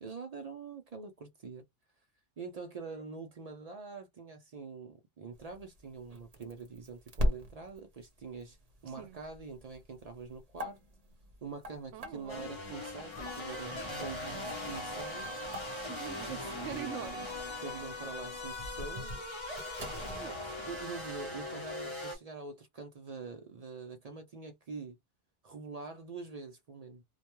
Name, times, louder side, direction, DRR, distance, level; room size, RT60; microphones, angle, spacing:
voice 1, 0.0-1.6 2.4-8.6 8.8-10.8 11.4-15.3 16.4-16.9 17.6-19.2 20.7-25.0 25.4-27.0, right 4 dB, 60° right, 0.4 m, -45 dB
sound 1, 5.3-20.3, equal, 40° right, 0.7 m, -41 dB
voice 2, 11.9-12.5 15.9-17.3 20.1-20.7, right 10 dB, 85° right, 0.9 m, -44 dB
sound 2, 12.3-22.2, left 2 dB, 30° left, 0.7 m, -41 dB
sound 3, 13.1-21.3, equal, 60° left, 0.8 m, -49 dB
2.2 x 2.2 x 2.9 m
omnidirectional pair, 1.2 m